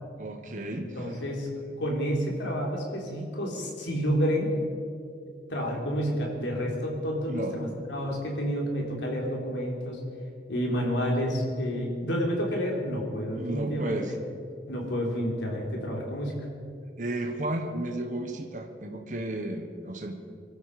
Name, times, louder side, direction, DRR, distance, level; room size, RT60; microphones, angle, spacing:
voice 1, 0.2-1.1 7.3-7.6 13.3-14.1 17.0-20.2, right 1 dB, 45° right, 3 dB, 1.3 m, -33 dB
voice 2, 0.8-4.5 5.5-10.0 10.5-14.0 14.7-16.3, equal, 90° left, -1 dB, 3.7 m, -29 dB
23.0 x 13.0 x 4.9 m, 2.3 s
head